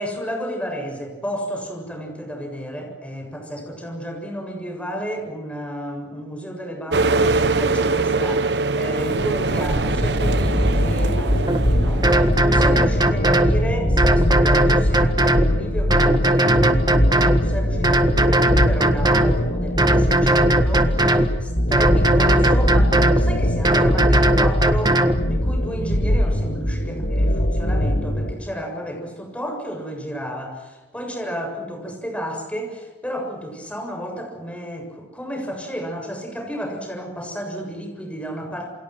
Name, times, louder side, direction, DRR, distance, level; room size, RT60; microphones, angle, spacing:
voice 1, 0.0-38.7, equal, 5° left, 2 dB, 7.2 m, -32 dB
sound 1, 6.9-12.5, right 3 dB, 70° right, 1.0 m, -23 dB
sound 2, 9.9-28.3, equal, 80° left, 5.0 m, -21 dB
sound 3, 11.5-11.6 12.0-13.6 14.0-15.5 15.9-17.4 17.8-19.4 19.8-21.3 21.7-23.2 23.6-25.2, right 1 dB, 25° right, 1.6 m, -18 dB
28.5 x 28.0 x 6.2 m, 1.2 s
head